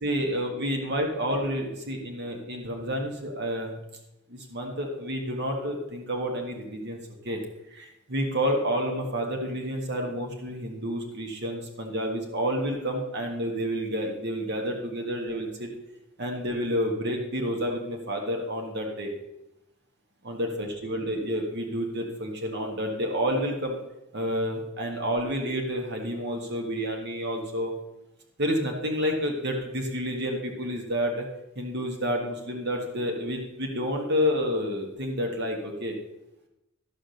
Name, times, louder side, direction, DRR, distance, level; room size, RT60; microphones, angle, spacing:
voice 1, 0.0-3.7 4.3-7.0 7.2-7.4 7.7-15.7 16.2-19.1 20.2-23.8 24.1-27.7 28.4-31.3 31.5-35.9, equal, 55° right, 2 dB, 1.7 m, -29 dB
13.5 x 5.0 x 6.4 m, 0.90 s
head